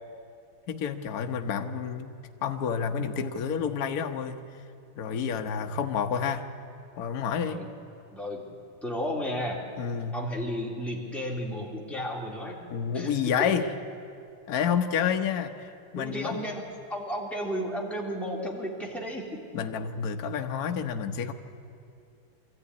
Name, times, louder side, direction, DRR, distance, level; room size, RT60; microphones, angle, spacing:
voice 1, 0.7-4.4 5.0-6.5 7.0-7.6 9.8-10.2 12.7-13.7 14.5-16.4 19.5-21.3, left 7 dB, 50° left, 5 dB, 1.3 m, -29 dB
voice 2, 8.1-8.6 8.8-9.6 10.1-12.6 12.9-13.1 15.9-16.6 16.9-19.4, equal, ahead, -3 dB, 2.9 m, -33 dB
24.0 x 14.0 x 9.7 m, 2.4 s
omnidirectional pair, 2.4 m